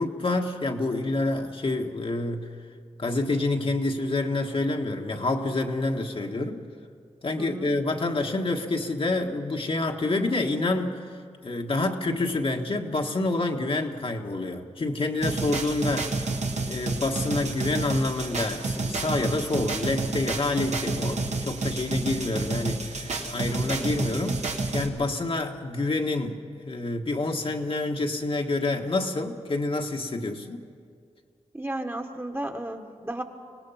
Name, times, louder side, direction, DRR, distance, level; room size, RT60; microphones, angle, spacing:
voice 1, 0.0-2.5 3.0-6.6 7.2-11.1 11.4-16.2 16.6-24.5 24.7-26.4 26.6-30.6, left 2 dB, 50° left, 2 dB, 1.5 m, -27 dB
voice 2, 7.4-7.7 31.5-33.2, right 1 dB, 20° right, 4 dB, 1.6 m, -33 dB
sound 1, 15.2-24.9, right 3 dB, 75° right, 1.8 m, -30 dB
25.0 x 18.5 x 5.7 m, 2.1 s
cardioid pair, 65°, 12 cm